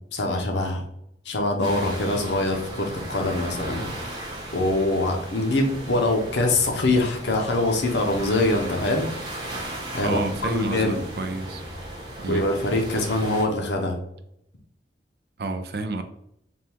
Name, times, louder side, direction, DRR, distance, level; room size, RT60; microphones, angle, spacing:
voice 1, 0.1-0.8 1.3-3.9 4.2-9.1 9.9-10.2 10.5-11.0 12.3-14.0, left 2 dB, 80° left, 0.8 m, -24 dB
sound 1, 1.6-13.4, right 1 dB, 25° right, 0.9 m, -36 dB
voice 2, 10.0-11.6 12.2-12.5 15.4-16.0, right 3 dB, 60° right, 0.4 m, -29 dB
3.6 x 2.3 x 4.4 m
head